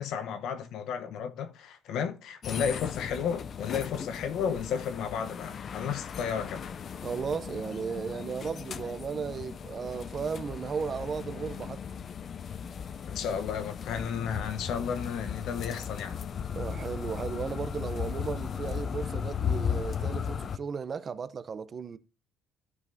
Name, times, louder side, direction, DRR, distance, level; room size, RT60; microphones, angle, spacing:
voice 1, 0.0-6.7 13.1-16.2, left 7 dB, 70° left, 0.9 m, -33 dB
sound 1, 2.4-20.6, left 7 dB, 40° left, 0.4 m, -36 dB
voice 2, 7.0-11.8 16.6-22.0, right 6 dB, 35° right, 0.6 m, -35 dB
14.5 x 5.3 x 2.7 m
cardioid pair, 125°, 0 cm